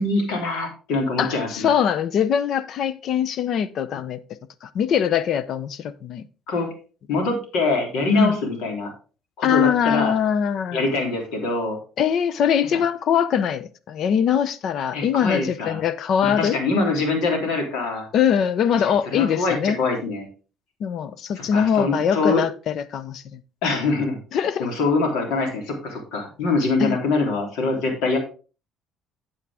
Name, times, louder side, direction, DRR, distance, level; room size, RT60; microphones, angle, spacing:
voice 1, 0.0-1.7 6.5-6.7 7.1-8.9 9.4-10.1 10.7-11.8 14.9-15.8 16.2-18.1 19.1-20.3 21.3-22.4 23.6-28.2, left 3 dB, 80° left, 3.3 m, -24 dB
voice 2, 1.2-4.2 4.6-6.3 8.1-8.3 9.4-10.9 12.0-16.6 18.1-19.8 20.8-23.4 24.3-24.7 26.8-27.0, left 8 dB, 60° left, 0.7 m, -22 dB
8.5 x 8.0 x 3.5 m
cardioid pair, 115°, 0 cm